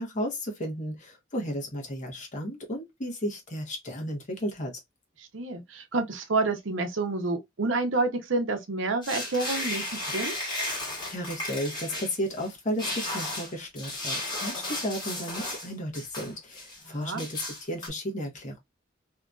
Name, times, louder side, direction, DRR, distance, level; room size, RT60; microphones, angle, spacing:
voice 1, 0.0-4.7 11.1-18.6, equal, 40° left, 1.0 m, -34 dB
voice 2, 5.2-10.3 17.0-17.3, right 3 dB, 75° right, 0.7 m, -29 dB
sound 1, 9.0-12.5 12.8-15.7 15.9-16.8 17.2-17.9, left 1 dB, 25° left, 1.4 m, -34 dB
2.9 x 2.5 x 2.3 m
head